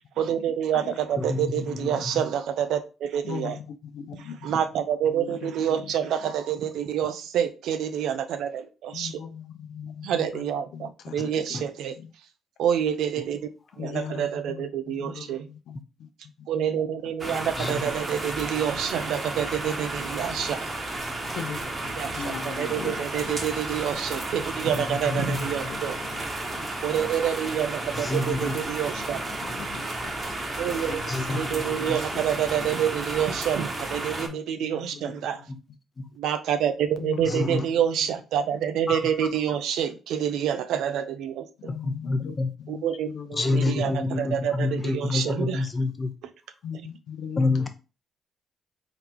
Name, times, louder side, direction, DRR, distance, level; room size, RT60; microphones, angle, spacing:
voice 1, 0.2-3.6 4.2-9.2 10.0-12.0 12.6-13.4 13.8-15.5 16.5-20.7 22.0-26.0 26.8-29.2 30.6-35.5 36.2-41.7 42.7-45.6, right 9 dB, 80° right, 0.5 m, -28 dB
voice 2, 1.2-2.2 11.5-11.6 17.6-17.7 24.7-25.5 27.9-28.5 31.1-31.4 31.9-32.0 35.5-35.6 36.0-36.1 37.3-37.7 38.9-39.0 41.7-42.5 43.3-46.1 47.4-47.7, left 3 dB, 25° left, 0.7 m, -28 dB
voice 3, 3.2-4.4 5.1-5.8 8.9-10.4 10.7-11.6 13.8-16.1 17.2-17.4 21.4-23.4 25.6-26.2 26.5-26.6 28.4-30.1 30.7-32.2 34.1-34.4 34.7-35.1 35.4-35.5 36.0-36.1 37.0-37.6 41.6-42.3 42.6-42.8 43.1-43.7 46.6-47.7, left 7 dB, 75° left, 0.7 m, -39 dB
sound 1, 17.2-34.3, right 2 dB, 30° right, 1.1 m, -33 dB
3.9 x 3.5 x 2.9 m
cardioid pair, 90°, 0 cm